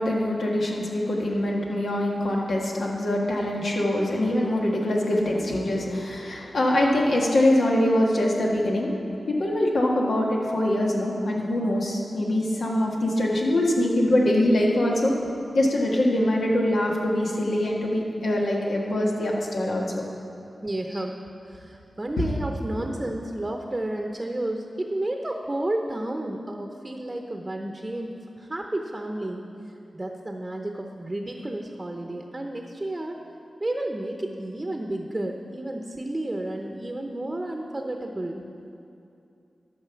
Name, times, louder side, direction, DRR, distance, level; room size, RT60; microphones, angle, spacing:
voice 1, 0.0-8.9 9.3-15.1 15.5-20.0 20.9-21.0 22.2-22.3 22.8-22.9, left 1 dB, 80° left, -2 dB, 1.7 m, -23 dB
voice 2, 20.6-21.2 21.4-29.4 29.9-33.2 33.6-38.5, right 1 dB, 25° right, 3 dB, 0.8 m, -31 dB
12.5 x 5.4 x 7.0 m, 2.6 s
wide cardioid pair, 70°, 0 cm